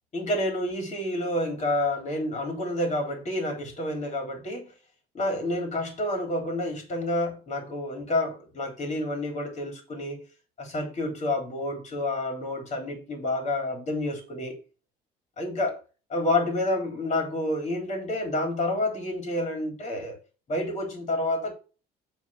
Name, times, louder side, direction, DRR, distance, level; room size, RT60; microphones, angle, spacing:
voice 1, 0.1-4.7 5.1-10.2 10.6-14.6 15.4-15.8 16.1-20.2 20.5-21.5, left 1 dB, 40° left, 3.7 m, -29 dB
7.4 x 4.2 x 5.8 m
cardioid pair, 110°, 17 cm